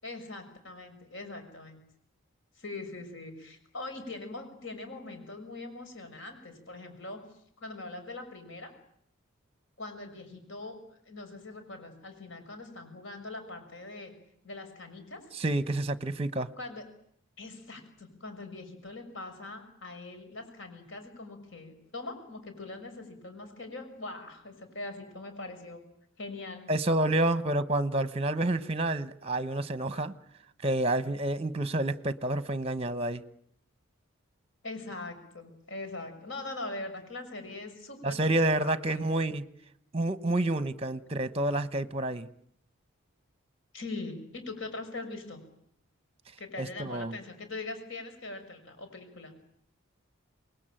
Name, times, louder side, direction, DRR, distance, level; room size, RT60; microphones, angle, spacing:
voice 1, 0.0-1.8 2.6-7.2 7.6-8.7 9.8-14.1 14.4-15.2 16.6-16.8 17.4-25.8 26.2-26.6 34.6-38.2 38.7-39.0 43.7-45.4 46.4-49.3, left 2 dB, 60° left, 6.3 m, -42 dB
voice 2, 15.3-16.5 26.7-30.1 30.6-33.2 38.0-39.4 39.9-42.3 46.6-47.2, right 1 dB, 30° right, 1.0 m, -29 dB
27.5 x 21.0 x 9.0 m
head